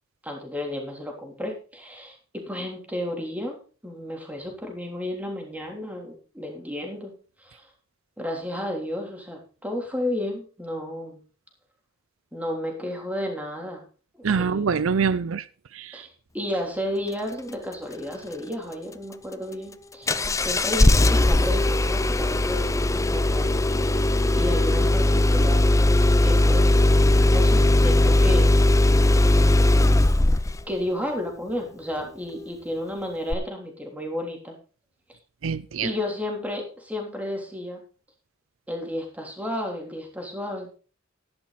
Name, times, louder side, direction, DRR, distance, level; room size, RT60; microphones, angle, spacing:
voice 1, 0.2-2.2 2.5-3.6 3.8-7.1 7.4-7.7 8.2-11.2 12.3-13.9 14.1-14.8 15.9-25.7 26.2-26.7 27.3-28.5 30.7-34.5 35.8-37.8 38.7-40.8, left 1 dB, 10° right, 3.4 m, -32 dB
voice 2, 14.2-15.4 15.7-16.1 35.4-35.9, right 6 dB, 75° right, 0.5 m, -25 dB
Engine starting, 20.1-30.7 33.3-33.4, left 1 dB, 15° left, 0.5 m, -19 dB
12.5 x 11.0 x 4.1 m
head